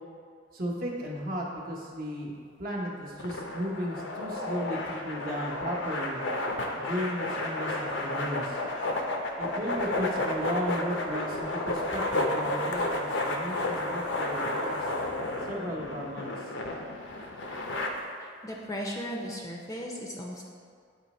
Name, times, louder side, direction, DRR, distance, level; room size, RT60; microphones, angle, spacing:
voice 1, 0.5-6.2 6.8-8.6 9.4-14.9 15.4-16.5, equal, 45° right, -3 dB, 1.0 m, -35 dB
sound 1, 3.2-17.9, left 1 dB, 70° left, 0.6 m, -32 dB
voice 2, 18.2-20.4, equal, 15° left, -2 dB, 0.5 m, -36 dB
9.0 x 3.0 x 4.2 m, 2.1 s
head